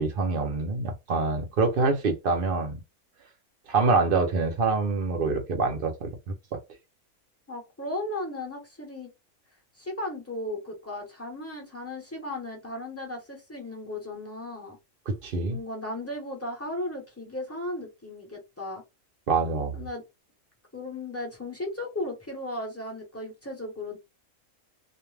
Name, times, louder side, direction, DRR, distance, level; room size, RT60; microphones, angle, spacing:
voice 1, 0.0-2.8 3.7-6.1 6.5-6.6 15.2-15.6 19.3-19.8, right 4 dB, 55° right, 0.7 m, -25 dB
voice 2, 7.5-9.1 9.8-14.8 15.5-18.8 19.7-20.0 20.7-24.0, left 1 dB, 15° left, 0.7 m, -36 dB
2.5 x 2.2 x 3.2 m
omnidirectional pair, 1.5 m